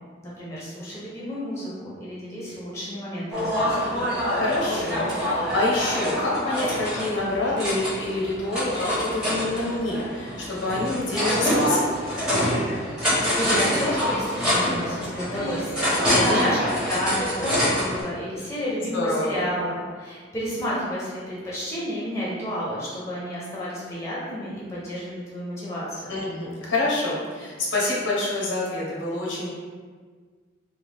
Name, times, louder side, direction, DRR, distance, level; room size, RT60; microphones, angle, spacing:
voice 1, 0.2-4.0 12.9-16.6 16.8-26.2, equal, 15° left, -7 dB, 0.8 m, -31 dB
sound 1, 3.3-18.0, equal, 5° right, 1.1 m, -25 dB
voice 2, 4.2-11.9 16.1-16.4 18.9-19.3 26.1-29.5, left 2 dB, 80° left, -5 dB, 0.9 m, -27 dB
3.6 x 2.3 x 3.4 m, 1.5 s
head